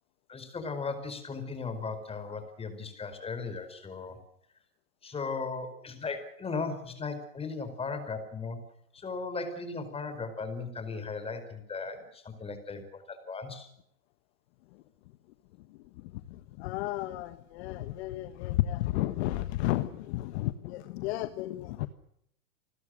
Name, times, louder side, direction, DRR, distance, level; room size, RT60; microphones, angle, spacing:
voice 1, 0.3-4.2 5.0-8.6 8.9-13.7, left 4 dB, 10° left, 9 dB, 4.8 m, -37 dB
voice 2, 15.7-21.9, left 15 dB, 45° left, 11 dB, 1.4 m, -33 dB
28.5 x 21.0 x 6.5 m, 0.74 s
hypercardioid pair, 140°, 46 cm